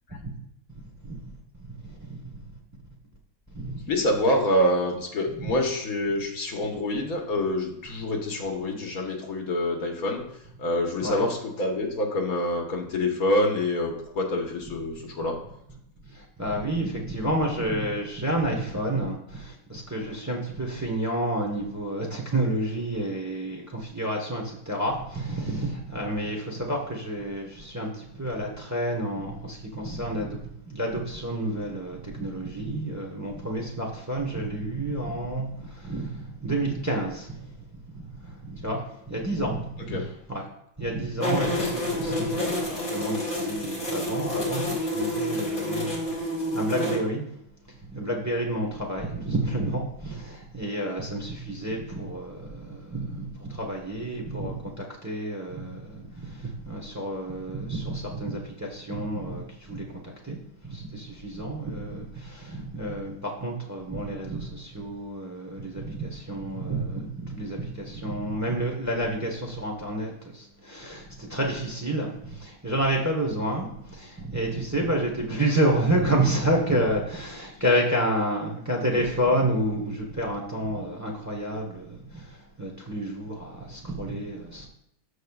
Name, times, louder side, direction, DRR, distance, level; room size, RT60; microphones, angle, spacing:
voice 1, 0.7-2.6 3.5-3.8 11.0-11.2 16.1-40.5 40.8-47.3 47.8-84.7, right 1 dB, 15° right, -1 dB, 1.0 m, -30 dB
voice 2, 3.8-10.2 10.6-15.4 39.9-40.0, left 1 dB, 70° left, 1 dB, 1.7 m, -26 dB
sound 1, 41.2-47.0, left 1 dB, 35° left, 2.4 m, -28 dB
13.5 x 5.0 x 2.4 m, 0.78 s
omnidirectional pair, 1.6 m